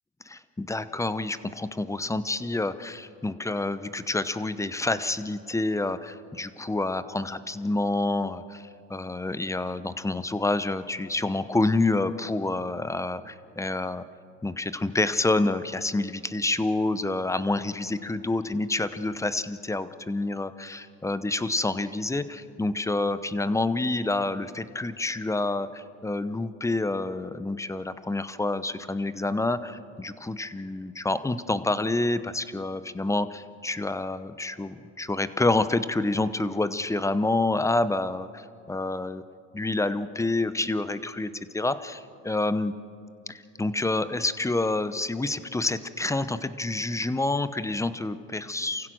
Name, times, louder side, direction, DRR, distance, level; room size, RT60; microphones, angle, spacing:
voice 1, 0.3-14.0 14.4-39.2 39.5-42.7 43.3-48.9, left 2 dB, 10° left, 13 dB, 0.8 m, -28 dB
28.5 x 15.5 x 6.2 m, 2.5 s
supercardioid pair, 95°, 31 cm